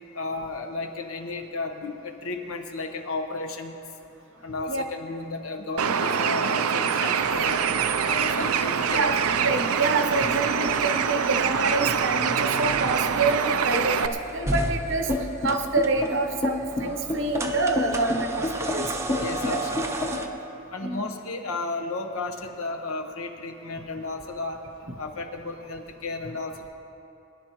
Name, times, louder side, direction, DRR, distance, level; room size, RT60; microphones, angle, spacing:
voice 1, 0.1-3.8 4.4-7.6 8.0-9.1 19.2-20.1 20.7-24.6 25.0-26.7, left 3 dB, 75° left, 5 dB, 1.0 m, -33 dB
Bird, 5.8-14.1, right 7 dB, 80° right, 0.5 m, -25 dB
sound 1, 7.2-20.3, right 2 dB, 15° right, 0.6 m, -36 dB
voice 2, 8.9-15.1 15.4-18.5 18.7-18.9 19.5-19.6 20.8-21.1, right 3 dB, 55° right, 6 dB, 0.9 m, -26 dB
sound 2, 15.1-20.4, left 2 dB, 30° left, 1.1 m, -28 dB
22.0 x 10.5 x 3.0 m, 2.7 s
head